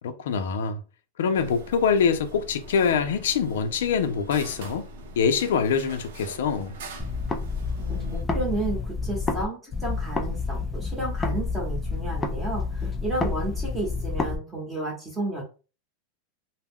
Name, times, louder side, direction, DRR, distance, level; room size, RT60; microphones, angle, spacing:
voice 1, 0.0-0.8 1.2-4.9 5.2-6.7, left 6 dB, 85° left, 0.5 m, -24 dB
sound 1, 1.3-8.2, right 1 dB, 75° right, 0.6 m, -42 dB
sound 2, 7.0-9.4 9.7-14.4, left 4 dB, 15° left, 0.3 m, -29 dB
voice 2, 7.8-15.4, right 2 dB, 10° right, 0.9 m, -32 dB
2.3 x 2.1 x 3.5 m
supercardioid pair, 155°, 0 cm